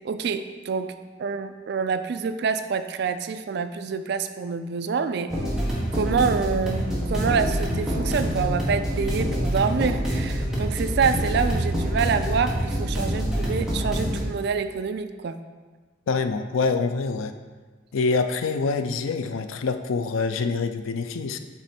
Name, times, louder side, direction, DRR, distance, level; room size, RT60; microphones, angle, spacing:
voice 1, 0.0-0.9 1.2-5.3 5.9-6.8 7.1-15.4, right 5 dB, 55° right, 10 dB, 0.3 m, -26 dB
sound 1, 5.3-14.2, equal, 5° right, 1.2 m, -26 dB
voice 2, 16.1-17.3 17.9-21.4, left 4 dB, 80° left, 9 dB, 0.4 m, -25 dB
8.1 x 3.1 x 4.4 m, 1.3 s
head